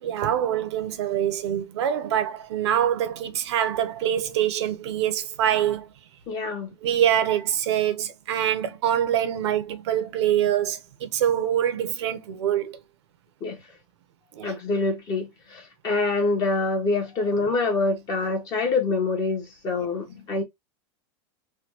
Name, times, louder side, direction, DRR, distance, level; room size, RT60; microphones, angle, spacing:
voice 1, 0.0-5.9 6.8-12.8 14.3-14.5, right 10 dB, 80° right, 0.8 m, -25 dB
voice 2, 6.3-6.7 13.4-13.6 14.4-20.4, left 3 dB, 30° left, 0.9 m, -25 dB
3.3 x 2.2 x 2.9 m
supercardioid pair, 165°, 14 cm